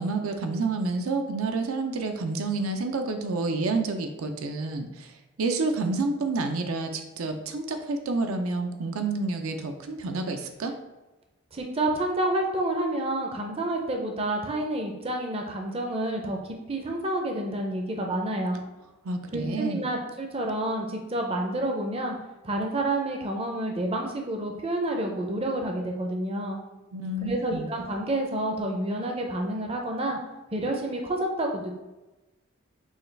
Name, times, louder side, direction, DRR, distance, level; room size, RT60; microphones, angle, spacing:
voice 1, 0.0-5.1 5.4-10.7 19.0-19.8 26.9-27.7, right 3 dB, 85° right, 5 dB, 0.5 m, -29 dB
voice 2, 11.5-18.6 19.3-22.2 22.4-26.6 27.2-30.2 30.5-31.8, right 1 dB, 25° right, 1 dB, 0.5 m, -29 dB
6.2 x 2.3 x 3.2 m, 1.1 s
head